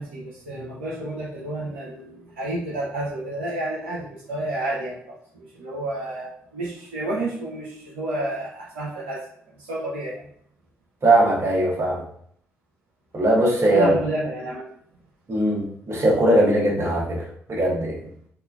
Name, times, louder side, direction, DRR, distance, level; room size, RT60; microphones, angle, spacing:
voice 1, 0.0-9.2 9.5-10.2 13.6-14.6 15.5-15.6, right 1 dB, 80° right, -6 dB, 0.5 m, -30 dB
voice 2, 11.0-12.0 13.1-13.9 15.3-17.2 17.5-17.9, right 1 dB, 40° right, -3 dB, 1.0 m, -20 dB
2.8 x 2.2 x 2.3 m, 0.64 s
figure-of-eight pair, 40°, 7 cm